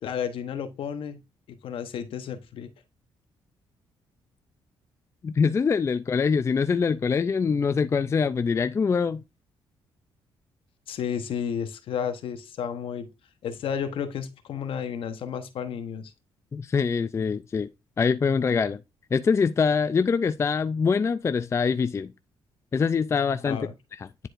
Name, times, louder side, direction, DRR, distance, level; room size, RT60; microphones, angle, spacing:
voice 1, 0.0-1.2 1.6-2.7 10.9-13.1 13.4-16.1 23.5-23.7, left 8 dB, 70° left, 1.0 m, -32 dB
voice 2, 5.2-9.2 16.5-17.7 18.0-18.8 19.1-22.1 22.7-23.7 24.0-24.1, left 5 dB, 30° left, 0.4 m, -24 dB
9.9 x 4.5 x 2.5 m
cardioid pair, 90°, 9 cm